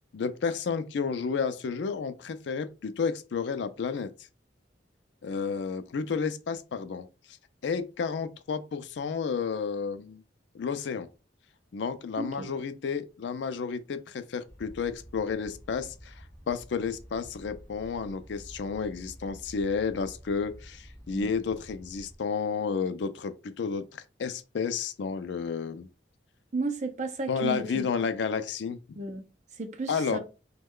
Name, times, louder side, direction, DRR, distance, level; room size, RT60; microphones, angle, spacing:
voice 1, 0.1-4.1 5.2-7.1 7.6-10.2 10.5-11.1 11.7-25.9 27.3-29.0 29.9-30.2, left 5 dB, 70° left, 0.4 m, -31 dB
voice 2, 12.2-12.5 21.1-21.3 26.5-27.9 29.0-29.2 29.6-30.2, right 2 dB, 40° right, 0.5 m, -33 dB
sound 1, 14.4-22.2, equal, 15° left, 0.9 m, -50 dB
3.1 x 2.2 x 3.6 m
head